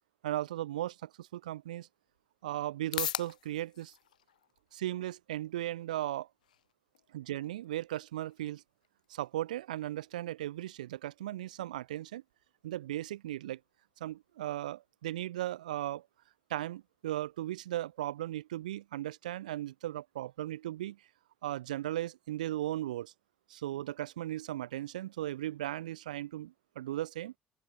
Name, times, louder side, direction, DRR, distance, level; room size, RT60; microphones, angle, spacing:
voice 1, 0.2-1.9 2.4-3.9 4.7-6.3 7.1-8.6 9.1-12.2 12.6-13.6 14.0-16.0 16.5-21.0 21.4-23.1 23.5-27.3, right 14 dB, 75° right, 0.5 m, -37 dB
sound 1, 1.5-18.4, left 11 dB, 80° left, 0.7 m, -48 dB
open air
figure-of-eight pair, 50°, 4 cm